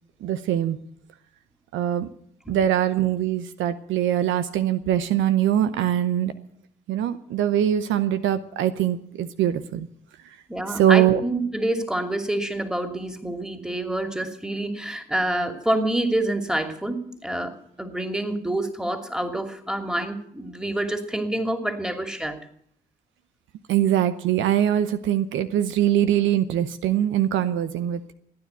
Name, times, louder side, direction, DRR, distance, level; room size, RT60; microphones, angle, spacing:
voice 1, 0.2-0.8 1.7-2.1 2.5-6.3 6.9-9.9 10.2-10.4 10.7-11.2 23.7-28.1, right 11 dB, 75° right, 11 dB, 0.8 m, -22 dB
voice 2, 10.5-22.4, right 1 dB, 5° right, 6 dB, 2.7 m, -27 dB
15.5 x 9.7 x 8.2 m, 0.67 s
hypercardioid pair, 45°, 20 cm